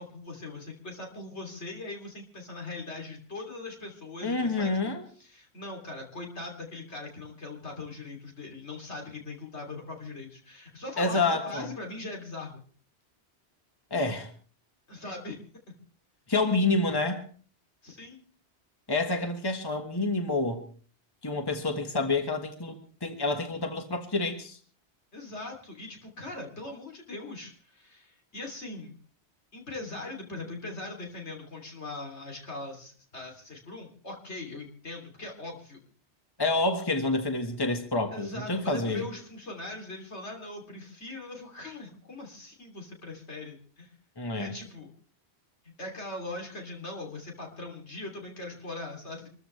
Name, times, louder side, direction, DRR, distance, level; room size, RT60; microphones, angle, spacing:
voice 1, 0.0-4.9 5.2-12.6 14.9-15.4 15.7-15.8 17.8-18.2 25.1-29.0 29.5-35.8 38.1-43.9 44.3-44.9 45.8-49.3, left 2 dB, 75° left, 0 dB, 3.5 m, -40 dB
voice 2, 4.2-5.0 11.0-11.7 13.9-14.3 16.3-17.2 18.9-20.6 21.2-24.6 36.4-39.1 44.2-44.6, left 2 dB, 20° left, 5 dB, 1.6 m, -28 dB
26.0 x 14.0 x 3.3 m, 0.43 s
omnidirectional pair, 1.2 m